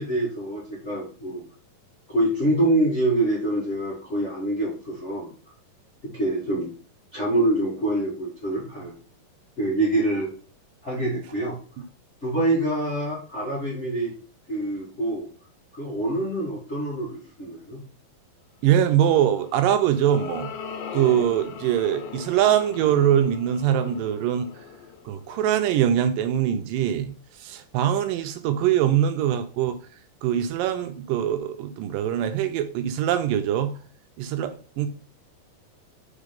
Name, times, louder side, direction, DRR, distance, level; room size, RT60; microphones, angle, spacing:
voice 1, 0.0-1.4 2.1-5.3 6.0-6.7 7.1-8.9 9.6-10.3 10.8-11.6 12.2-14.1 14.5-15.3 15.7-17.8, right 1 dB, 35° left, 1.2 m, -25 dB
voice 2, 18.6-20.5 20.9-24.5 25.1-29.8 30.2-33.7 34.2-34.9, right 10 dB, 80° right, 2.2 m, -23 dB
sound 1, 19.4-25.9, left 6 dB, 85° left, 2.6 m, -39 dB
5.0 x 4.5 x 5.1 m
omnidirectional pair, 4.0 m